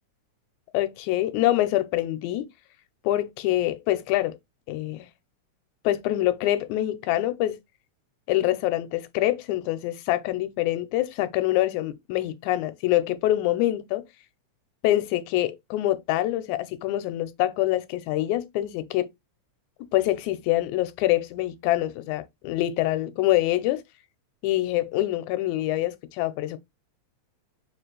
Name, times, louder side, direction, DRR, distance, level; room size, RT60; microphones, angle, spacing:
voice 1, 0.7-2.5 3.0-4.4 4.7-5.0 5.8-7.6 8.3-14.0 14.8-19.1 19.9-23.8 24.4-26.6, left 15 dB, 90° left, 2.0 m, -25 dB
4.8 x 2.5 x 3.8 m
omnidirectional pair, 3.3 m